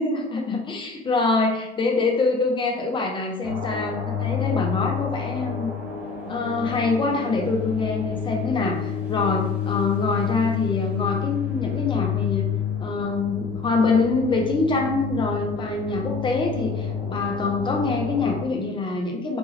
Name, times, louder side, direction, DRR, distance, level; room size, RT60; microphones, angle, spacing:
voice 1, 0.0-5.7 6.3-12.5 12.8-19.4, left 3 dB, 15° left, 1 dB, 0.6 m, -25 dB
sound 1, 3.4-18.4, left 8 dB, 5° right, 1.2 m, -29 dB
3.5 x 3.0 x 3.0 m, 0.91 s
figure-of-eight pair, 80°, 35 cm